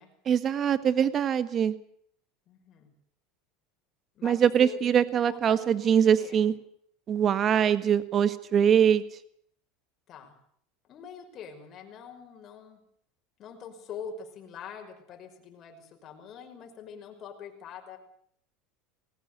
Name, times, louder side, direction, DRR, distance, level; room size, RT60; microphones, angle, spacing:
voice 1, 0.2-1.7 4.2-6.5 7.1-9.0, right 8 dB, 35° right, 12 dB, 1.6 m, -23 dB
voice 2, 2.5-2.9 4.2-4.8 5.3-6.5 10.1-10.3 10.9-12.8 13.4-18.0, left 7 dB, 40° left, 4 dB, 5.9 m, -44 dB
20.5 x 18.5 x 8.3 m, 0.65 s
supercardioid pair, 130°, 0 cm